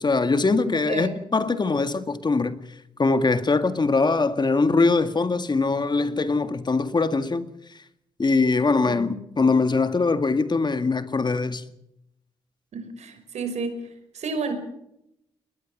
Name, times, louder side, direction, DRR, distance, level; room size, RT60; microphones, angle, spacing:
voice 1, 0.0-2.6 3.0-7.5 8.2-11.6, left 3 dB, 35° left, 1.9 m, -22 dB
voice 2, 0.7-1.2 8.8-9.2 12.7-13.7 14.1-14.5, right 4 dB, 65° right, 5.1 m, -31 dB
21.0 x 20.0 x 7.3 m
supercardioid pair, 45°, 12 cm